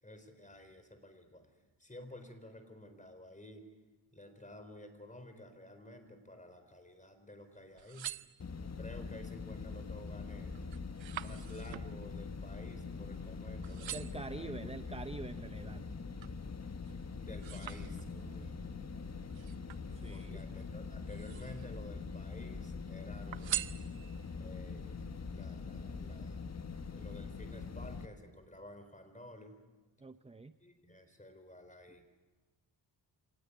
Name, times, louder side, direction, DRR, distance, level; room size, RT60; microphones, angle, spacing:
voice 1, 0.0-3.7 4.1-8.1 8.8-10.5 11.1-15.0 17.2-18.7 20.1-24.0 24.4-26.4 27.0-29.6 30.6-32.1, left 1 dB, 15° left, 8 dB, 4.0 m, -52 dB
sound 1, 7.6-8.9 9.5-9.9 10.2-13.3 13.6-14.3 14.9-16.4 16.8-18.4 19.3-20.4 21.0-21.8 22.1-22.8 23.3-24.4 24.9-25.0, right 12 dB, 75° right, 0.7 m, -44 dB
sound 2, 8.4-28.1, left 4 dB, 35° left, 1.4 m, -43 dB
voice 2, 13.9-16.0 19.9-20.4 30.0-30.5, right 3 dB, 15° right, 11 dB, 0.7 m, -45 dB
sound 3, 17.8-21.3, right 2 dB, 40° right, 6.6 m, -59 dB
26.0 x 19.0 x 9.6 m, 1.3 s
cardioid pair, 90°, 46 cm